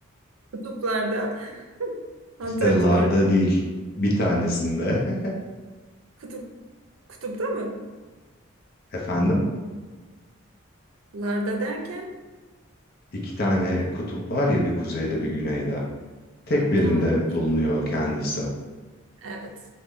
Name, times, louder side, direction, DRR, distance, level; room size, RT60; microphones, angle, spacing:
voice 1, 0.6-2.0 2.4-3.1 6.2-6.4 7.2-7.7 11.1-12.1 16.5-17.1 19.2-19.5, right 2 dB, 80° right, 2 dB, 0.5 m, -29 dB
voice 2, 2.6-3.6 4.0-5.3 8.9-9.5 13.1-15.8 16.5-18.5, equal, 45° left, -2 dB, 0.6 m, -23 dB
3.1 x 2.1 x 3.6 m, 1.3 s
head